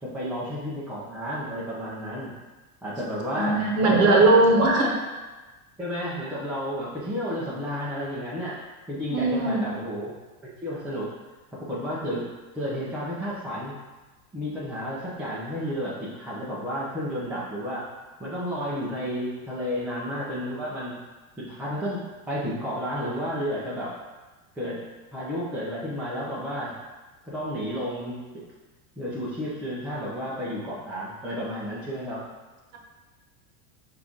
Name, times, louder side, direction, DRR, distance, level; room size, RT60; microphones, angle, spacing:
voice 1, 0.0-2.3 2.8-4.3 5.8-8.6 8.9-10.1 10.6-11.1 11.6-12.3 12.5-13.8 14.3-17.8 18.2-20.9 21.4-23.9 24.6-24.8 25.1-26.7 27.2-28.2 29.0-32.2, equal, 5° right, -9 dB, 0.3 m, -31 dB
voice 2, 3.4-5.0 9.1-9.7, right 2 dB, 35° right, 0 dB, 0.9 m, -19 dB
5.8 x 2.5 x 3.5 m, 1.2 s
supercardioid pair, 140°, 45 cm